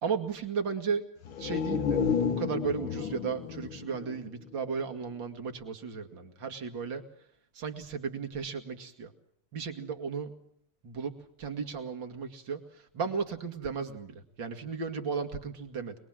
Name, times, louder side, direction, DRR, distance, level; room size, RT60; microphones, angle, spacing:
voice 1, 0.0-1.1 1.4-7.0 7.5-9.1 9.5-10.4 10.8-16.0, right 5 dB, 60° right, 6 dB, 3.0 m, -35 dB
sound 1, 1.2-5.0 5.3-5.4, left 6 dB, 70° left, 2.2 m, -32 dB
27.0 x 21.0 x 7.5 m, 0.67 s
omnidirectional pair, 2.3 m